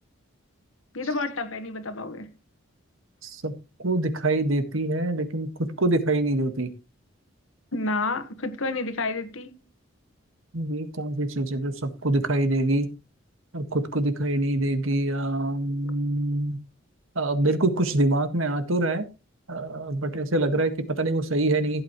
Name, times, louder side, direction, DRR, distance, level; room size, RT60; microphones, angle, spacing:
voice 1, 0.9-2.3 7.7-9.6, left 3 dB, 75° left, 1.5 m, -30 dB
voice 2, 3.2-3.5 3.8-5.5 5.8-6.7 10.5-12.9 13.5-16.6 17.2-19.1 19.5-21.8, right 2 dB, 75° right, 1.7 m, -25 dB
15.5 x 8.5 x 3.1 m
head